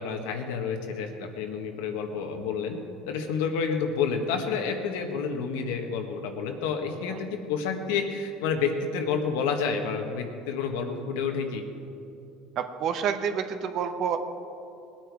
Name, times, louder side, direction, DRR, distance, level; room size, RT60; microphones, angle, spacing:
voice 1, 0.0-2.8 3.1-11.6, left 5 dB, 90° left, 4 dB, 1.5 m, -29 dB
voice 2, 12.6-14.2, right 7 dB, 50° right, 8 dB, 1.0 m, -28 dB
19.5 x 9.0 x 4.8 m, 2.7 s
supercardioid pair, 120°, 0 cm